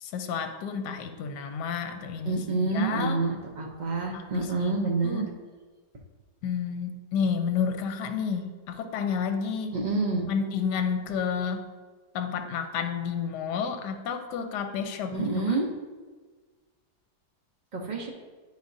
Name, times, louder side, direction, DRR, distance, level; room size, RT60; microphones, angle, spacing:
voice 1, 0.0-3.2 4.1-4.7 5.0-5.3 6.4-9.8 10.3-11.7 12.1-15.6, left 6 dB, 80° left, 7 dB, 1.2 m, -31 dB
voice 2, 2.3-5.3 9.7-10.2 15.1-15.7 17.7-18.1, right 3 dB, 80° right, -1 dB, 0.4 m, -28 dB
9.2 x 5.0 x 2.6 m, 1.4 s
omnidirectional pair, 1.8 m